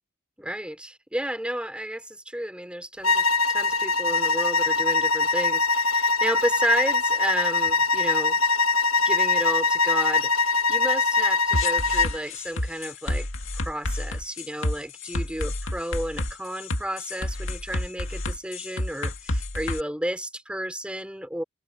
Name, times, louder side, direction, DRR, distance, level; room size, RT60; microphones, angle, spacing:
voice 1, 0.4-8.4 9.1-13.3 13.5-21.4, right 1 dB, 5° right, 5.2 m, -32 dB
sound 1, 3.0-12.2, left 4 dB, 80° left, 1.3 m, -22 dB
sound 2, 11.5-19.8, left 1 dB, 60° left, 2.4 m, -29 dB
head